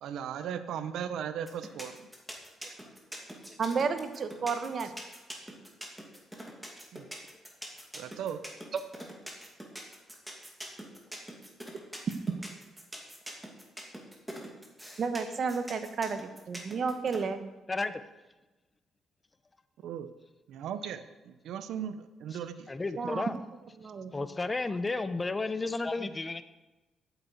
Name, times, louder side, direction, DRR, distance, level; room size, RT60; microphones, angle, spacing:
voice 1, 0.0-2.0 6.9-7.1 7.9-8.4 19.8-20.1 20.5-21.0 21.4-22.7, right 8 dB, 80° right, 0.7 m, -37 dB
sound 1, 1.5-17.2, equal, 5° right, 2.5 m, -43 dB
voice 2, 3.6-4.9 8.7-8.8 15.0-17.4 23.0-23.3 23.8-24.2, right 5 dB, 50° right, 1.1 m, -32 dB
voice 3, 17.7-18.0 22.3-22.4 22.7-23.4 24.1-26.4, left 3 dB, 25° left, 0.8 m, -32 dB
9.1 x 8.0 x 7.9 m
cardioid pair, 90°, 0 cm